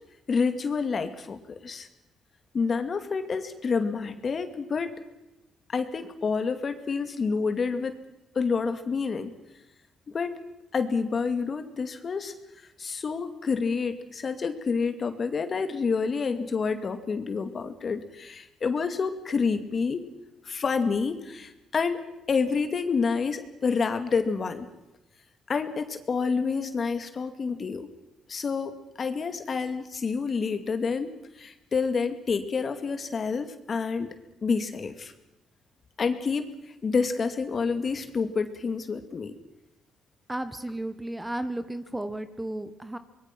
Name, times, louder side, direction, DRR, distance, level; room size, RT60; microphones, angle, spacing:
voice 1, 0.3-1.9 2.5-4.9 5.7-7.9 8.3-9.3 10.1-10.4 10.7-12.3 12.8-20.0 20.4-22.0 22.3-24.7 25.5-27.9 28.3-28.7 29.0-31.1 31.4-34.1 34.4-35.1 36.0-36.5 36.8-39.3, left 5 dB, 45° left, 8 dB, 2.3 m, -28 dB
voice 2, 40.3-43.0, right 1 dB, 10° right, 11 dB, 1.3 m, -33 dB
25.5 x 21.5 x 6.1 m, 0.95 s
cardioid pair, 90°, 0 cm